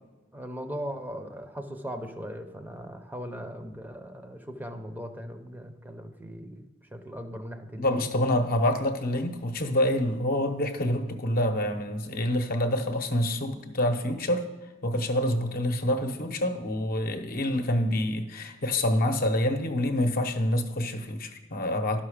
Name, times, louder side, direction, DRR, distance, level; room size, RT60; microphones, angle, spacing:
voice 1, 0.3-6.6 6.9-8.0, equal, 10° right, 6 dB, 0.6 m, -39 dB
voice 2, 7.8-14.5 14.8-22.0, left 1 dB, 50° left, 6 dB, 0.8 m, -27 dB
12.0 x 5.8 x 4.9 m, 1.2 s
head